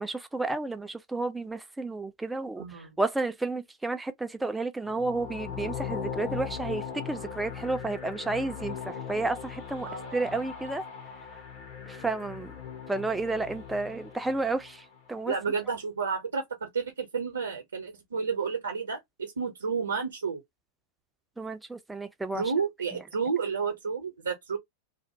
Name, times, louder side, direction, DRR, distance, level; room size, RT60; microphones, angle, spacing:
voice 1, 0.0-10.8 11.9-12.6 12.9-15.3 21.4-22.4 22.9-23.0, right 3 dB, 5° right, 0.4 m, -32 dB
voice 2, 2.6-3.0 9.8-10.2 15.3-20.4 22.3-24.6, right 5 dB, 70° right, 0.6 m, -31 dB
sound 1, 4.8-15.0, left 7 dB, 45° left, 0.9 m, -39 dB
2.5 x 2.0 x 2.7 m
figure-of-eight pair, 90°, 0 cm